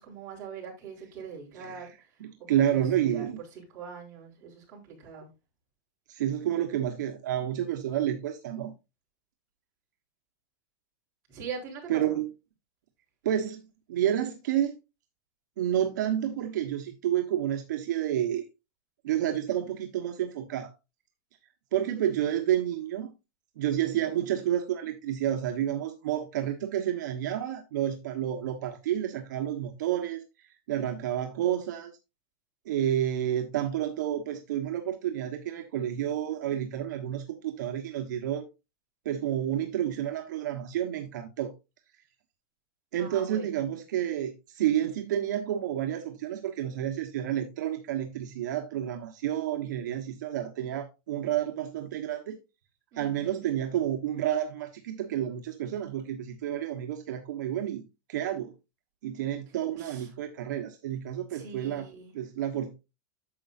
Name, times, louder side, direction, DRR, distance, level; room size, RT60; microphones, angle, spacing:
voice 1, 0.0-1.9 2.7-3.2 3.7-5.3 11.3-12.2 43.0-43.5 52.9-53.5 59.8-60.1 61.3-62.1, right 6 dB, 30° right, 3.9 m, -42 dB
voice 2, 1.5-1.9 2.2-3.4 6.1-8.7 11.9-12.3 13.2-14.7 15.6-18.5 19.0-20.7 21.7-23.1 23.6-31.9 32.6-38.5 39.0-41.5 42.9-52.4 53.0-57.8 58.1-58.5 59.0-61.9 62.1-62.7, right 11 dB, 75° right, 1.2 m, -30 dB
10.0 x 6.9 x 2.6 m
supercardioid pair, 170°, 10 cm